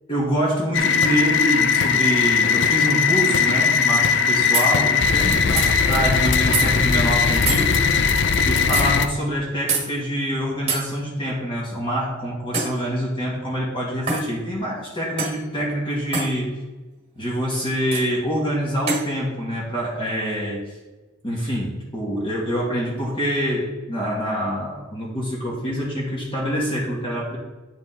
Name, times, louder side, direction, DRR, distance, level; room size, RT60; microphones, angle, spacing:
voice 1, 0.1-7.8 8.5-16.5 17.2-20.8 21.2-27.4, equal, 25° left, -5 dB, 1.7 m, -25 dB
sound 1, 0.7-9.1, left 6 dB, 55° left, 0.5 m, -19 dB
sound 2, 4.5-4.7 5.6-5.7 6.5-6.7 7.5-7.6 8.7-8.9 9.7-9.9 10.7-10.8 12.5-12.8 14.1-14.3 15.2-15.4 16.1-16.3 17.9-18.1 18.9-19.1, right 4 dB, 30° right, 1.6 m, -24 dB
9.5 x 5.2 x 3.8 m, 1.2 s
head